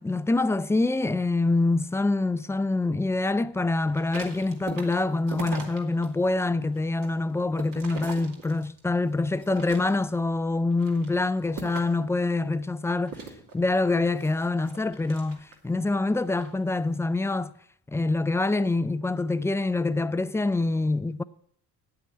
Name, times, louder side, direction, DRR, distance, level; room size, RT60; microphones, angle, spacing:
voice 1, 0.0-13.2 13.5-17.5 17.9-21.2, left 2 dB, 10° left, 0.4 m, -25 dB
sound 1, 3.9-6.1 6.5-8.9 9.3-10.2 10.7-12.1 13.0-15.7 16.2-16.5, right 4 dB, 65° right, 2.5 m, -41 dB
9.1 x 8.4 x 8.4 m
cardioid pair, 85°, 36 cm